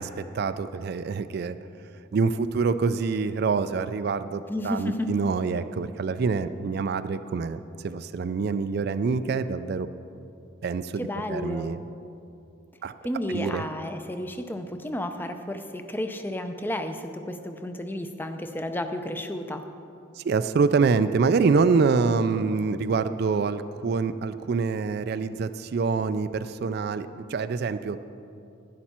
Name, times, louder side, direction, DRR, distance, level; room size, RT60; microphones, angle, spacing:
voice 1, 0.0-1.6 2.1-9.9 10.6-11.8 12.8-12.9 13.3-13.6 20.2-28.0, right 4 dB, 50° right, 12 dB, 0.3 m, -26 dB
voice 2, 4.5-5.1 11.0-11.8 13.0-19.6, left 1 dB, 10° left, 8 dB, 0.5 m, -32 dB
11.5 x 11.0 x 4.4 m, 2.6 s
head